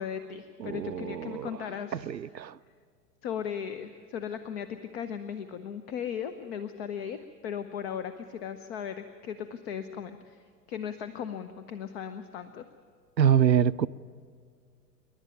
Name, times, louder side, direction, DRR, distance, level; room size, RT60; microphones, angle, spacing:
voice 1, 0.0-2.1 3.2-7.2 7.4-12.6, left 8 dB, 40° left, 0.9 m, -37 dB
voice 2, 0.6-1.5 1.9-2.5 13.2-13.9, right 9 dB, 90° right, 0.6 m, -25 dB
28.0 x 11.5 x 9.3 m
figure-of-eight pair, 100°, 49 cm